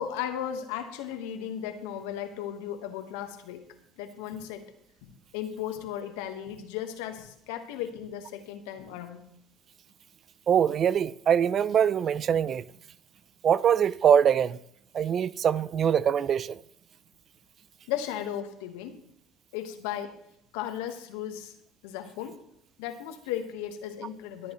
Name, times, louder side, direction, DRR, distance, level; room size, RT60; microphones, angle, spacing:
voice 1, 0.0-3.6 4.0-4.6 5.0-9.2 17.9-19.0 19.5-20.1 20.5-21.5 21.8-22.4 22.8-24.5, left 10 dB, 85° left, 1.3 m, -35 dB
voice 2, 10.5-12.6 13.4-14.6 14.9-16.6, right 8 dB, 45° right, 0.4 m, -23 dB
25.0 x 8.6 x 3.1 m
supercardioid pair, 90°, 0 cm